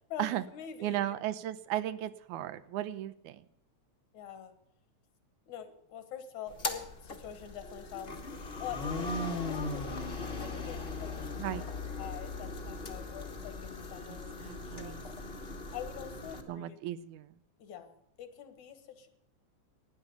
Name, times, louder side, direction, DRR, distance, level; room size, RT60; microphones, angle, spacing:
voice 1, 0.1-1.1 4.1-4.5 5.5-8.1 8.6-11.1 12.0-14.9 15.7-16.8 17.6-19.1, left 9 dB, 75° left, 9 dB, 2.7 m, -45 dB
voice 2, 0.8-3.5 11.4-11.6 14.1-15.0 16.5-17.4, right 13 dB, 85° right, 14 dB, 2.2 m, -36 dB
sound 1, 6.5-16.4, left 3 dB, 35° left, 0.9 m, -38 dB
12.5 x 10.0 x 9.2 m, 0.75 s
omnidirectional pair, 3.4 m